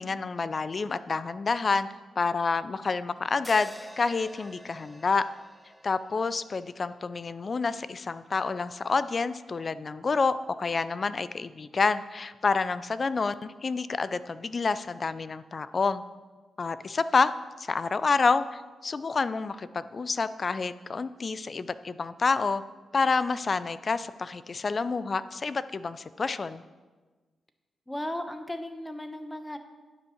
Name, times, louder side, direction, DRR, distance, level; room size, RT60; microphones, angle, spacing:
voice 1, 0.0-1.9 2.2-5.2 5.8-16.0 16.6-17.3 17.6-22.6 22.9-26.6, left 4 dB, 45° left, 14 dB, 0.4 m, -28 dB
sound 1, 3.4-7.7, right 1 dB, 5° right, 0.6 m, -48 dB
voice 2, 27.9-29.6, left 1 dB, 10° left, 7 dB, 1.0 m, -36 dB
9.8 x 5.3 x 6.5 m, 1.3 s
cardioid pair, 60°, 0 cm